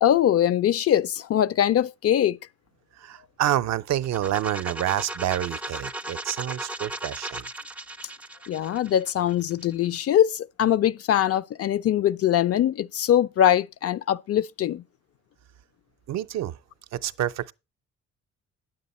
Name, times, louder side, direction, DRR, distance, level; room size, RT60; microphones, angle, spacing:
voice 1, 0.0-2.4 8.5-14.8, left 11 dB, 50° left, 0.4 m, -22 dB
voice 2, 3.0-7.5 16.1-16.6 16.9-17.5, right 12 dB, 60° right, 0.5 m, -28 dB
sound 1, 4.0-9.8, right 1 dB, 5° right, 0.4 m, -36 dB
9.3 x 7.7 x 4.1 m
cardioid pair, 90°, 30 cm